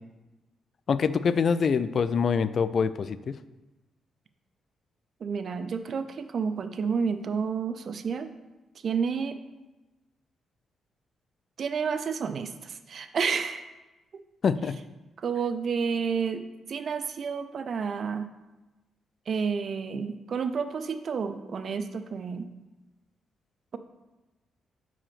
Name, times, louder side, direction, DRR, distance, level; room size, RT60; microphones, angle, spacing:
voice 1, 0.9-3.4 14.4-14.8, left 6 dB, 55° left, 15 dB, 0.3 m, -25 dB
voice 2, 5.2-8.3 8.8-9.4 11.6-13.7 15.2-16.4 16.7-18.3 19.3-22.5, right 6 dB, 55° right, 10 dB, 0.5 m, -30 dB
4.9 x 4.9 x 5.8 m, 1.1 s
cardioid pair, 80°, 0 cm